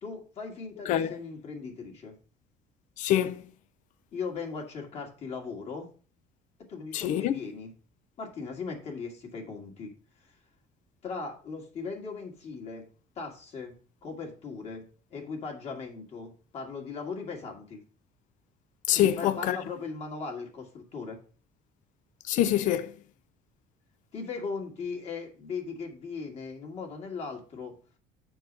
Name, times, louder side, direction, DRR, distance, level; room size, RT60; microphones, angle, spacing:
voice 1, 0.0-2.1 4.1-5.9 6.7-7.7 8.2-9.9 10.2-10.3 11.0-12.9 13.2-17.8 18.9-21.2 24.1-27.7, left 4 dB, 45° left, 2.2 m, -38 dB
voice 2, 0.9-1.2 3.0-3.4 6.9-7.3 18.9-19.6 22.3-22.9, left 11 dB, 65° left, 0.5 m, -25 dB
7.2 x 4.6 x 5.2 m
cardioid pair, 140°, 14 cm